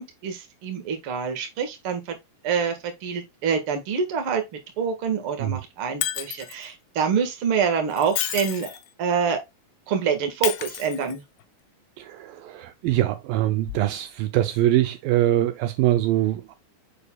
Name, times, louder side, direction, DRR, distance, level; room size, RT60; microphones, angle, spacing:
voice 1, 0.0-2.2 2.4-4.4 4.8-9.4 9.9-11.2, right 6 dB, 45° right, 2.0 m, -26 dB
Shatter, 6.0-6.7 7.9-8.9 10.4-11.4 13.7-13.8, left 13 dB, 90° left, 2.7 m, -30 dB
voice 2, 12.0-16.5, right 14 dB, 80° right, 2.3 m, -23 dB
6.8 x 6.6 x 2.3 m
omnidirectional pair, 4.3 m